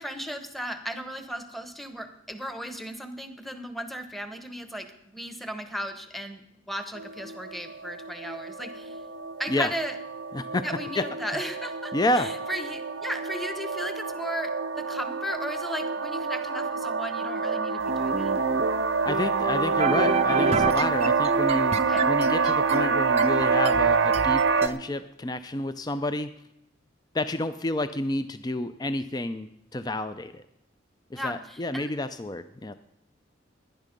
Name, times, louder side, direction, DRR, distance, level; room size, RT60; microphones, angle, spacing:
voice 1, 0.0-9.0 9.4-9.9 10.6-14.5 14.8-18.3 21.8-22.1 31.1-31.9, equal, ahead, 8 dB, 1.0 m, -36 dB
sound 1, 7.0-24.7, right 5 dB, 75° right, 0.7 m, -27 dB
voice 2, 10.3-10.6 10.9-11.1 11.9-12.3 19.0-21.8 22.1-26.3 27.1-29.5 29.7-30.4 31.1-32.7, left 1 dB, 20° left, 11 dB, 0.4 m, -29 dB
sound 2, 17.9-24.7, right 4 dB, 30° right, 0.5 m, -29 dB
17.5 x 11.0 x 5.3 m, 0.83 s
head